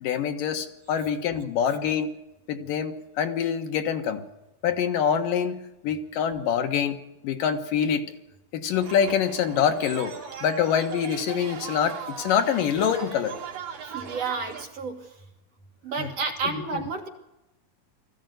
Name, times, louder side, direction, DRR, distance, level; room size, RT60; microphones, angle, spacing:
voice 1, 0.0-2.1 2.5-4.2 4.6-5.6 5.8-7.0 7.2-8.0 8.5-10.1 10.4-13.4 16.0-16.1 16.7-16.8, left 8 dB, 70° left, 6 dB, 3.0 m, -25 dB
sound 1, 8.7-14.6, right 7 dB, 70° right, 4.1 m, -39 dB
voice 2, 13.8-15.1 15.8-17.1, right 4 dB, 50° right, 3 dB, 2.5 m, -31 dB
20.5 x 15.0 x 9.3 m, 0.92 s
omnidirectional pair, 4.1 m